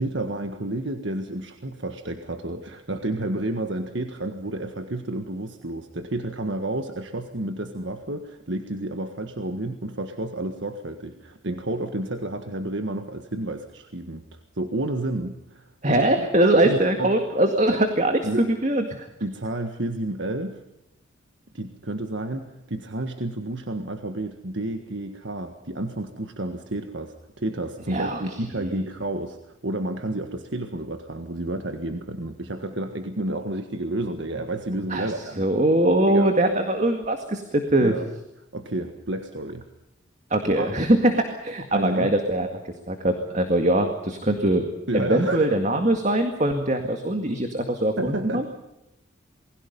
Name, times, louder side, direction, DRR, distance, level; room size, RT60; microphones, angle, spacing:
voice 1, 0.0-16.1 16.6-17.1 18.2-18.5 19.2-20.6 21.5-35.5 36.1-36.3 37.8-38.1 38.5-39.7 40.4-40.7 41.7-42.1 44.9-45.6 48.0-48.6, right 1 dB, 65° right, 6 dB, 1.6 m, -30 dB
voice 2, 15.8-19.1 27.9-28.2 28.6-28.8 34.9-35.1 35.4-37.9 40.3-42.5 42.9-44.7 44.9-48.6, right 1 dB, 35° right, 6 dB, 2.0 m, -22 dB
28.5 x 21.5 x 5.5 m, 0.89 s
head